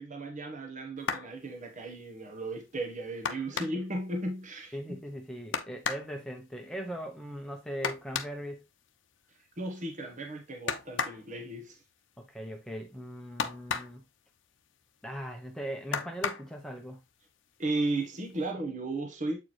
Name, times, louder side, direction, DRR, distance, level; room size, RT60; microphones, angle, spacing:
voice 1, 0.0-5.0 9.6-11.8 17.6-19.4, right 2 dB, 40° right, 1.1 m, -35 dB
sound 1, 1.0-1.4 3.2-3.9 5.5-6.1 7.8-8.4 10.7-11.2 13.4-14.0 15.9-16.5 17.6-17.7 18.2-18.4, left 6 dB, 65° left, 0.7 m, -33 dB
voice 2, 4.7-8.7 12.2-14.0 15.0-17.0, equal, 5° left, 0.8 m, -39 dB
7.7 x 4.6 x 3.1 m
head